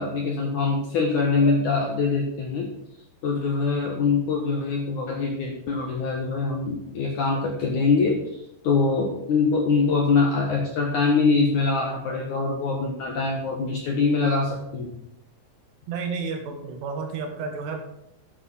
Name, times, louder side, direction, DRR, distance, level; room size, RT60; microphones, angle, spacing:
voice 1, 0.0-2.7 3.2-8.2 8.6-15.0, left 4 dB, 60° left, 0 dB, 2.2 m, -23 dB
voice 2, 15.9-17.8, right 5 dB, 70° right, 3 dB, 3.6 m, -31 dB
10.0 x 9.6 x 5.6 m, 0.78 s
omnidirectional pair, 5.3 m